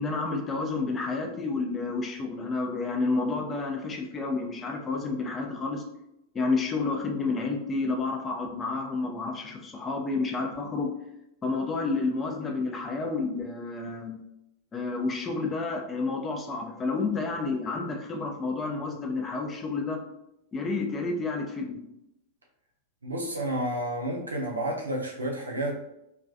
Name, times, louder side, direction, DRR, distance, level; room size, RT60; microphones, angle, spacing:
voice 1, 0.0-5.8 6.3-11.0 11.4-14.2 14.7-20.0 20.5-21.8, left 3 dB, 20° left, 2 dB, 0.4 m, -30 dB
voice 2, 23.0-25.8, right 1 dB, 80° right, -1 dB, 0.5 m, -30 dB
2.3 x 2.2 x 2.5 m, 0.84 s
figure-of-eight pair, 90°, 0 cm